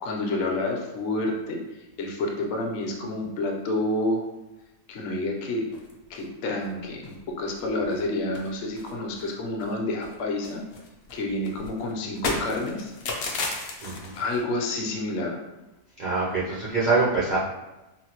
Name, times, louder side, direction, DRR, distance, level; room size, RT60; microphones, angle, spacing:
voice 1, 0.0-1.6 2.0-4.2 4.9-5.7 6.1-10.6 11.1-12.9 14.2-15.4, left 2 dB, 60° left, 1 dB, 0.8 m, -29 dB
sound 1, 5.7-6.3 6.6-6.7 7.0-7.2 7.5-8.0 8.3-9.8 10.0-14.4, left 3 dB, 85° left, 0.5 m, -35 dB
voice 2, 13.8-14.2 16.0-17.4, right 3 dB, 80° right, -7 dB, 0.4 m, -25 dB
3.8 x 2.0 x 2.8 m, 1.0 s
omnidirectional pair, 1.6 m